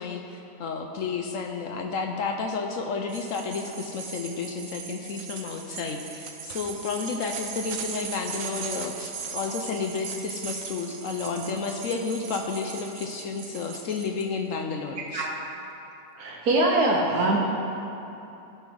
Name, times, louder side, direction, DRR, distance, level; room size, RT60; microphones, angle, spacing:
voice 1, 0.0-15.3, left 4 dB, 65° left, 4 dB, 1.0 m, -31 dB
sound 1, 3.1-14.2, right 6 dB, 70° right, 1.2 m, -38 dB
voice 2, 16.2-17.4, right 2 dB, 85° right, -2 dB, 1.5 m, -23 dB
12.0 x 5.6 x 6.2 m, 2.9 s
omnidirectional pair, 1.5 m